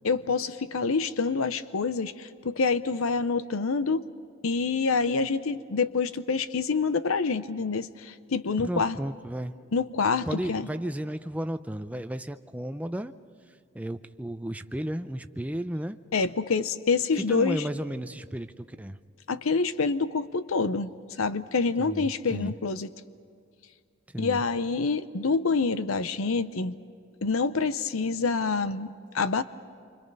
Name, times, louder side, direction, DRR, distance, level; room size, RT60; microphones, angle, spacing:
voice 1, 0.0-4.1 4.4-9.0 9.7-10.7 16.1-17.6 19.3-20.9 21.2-22.9 24.2-26.8 27.2-29.4, left 4 dB, 80° left, 13 dB, 0.7 m, -27 dB
voice 2, 8.6-9.6 10.3-13.1 13.7-16.0 17.3-19.0 21.8-22.6 24.1-24.4, right 1 dB, 5° right, 9 dB, 0.5 m, -33 dB
27.5 x 25.0 x 5.4 m, 2.2 s
head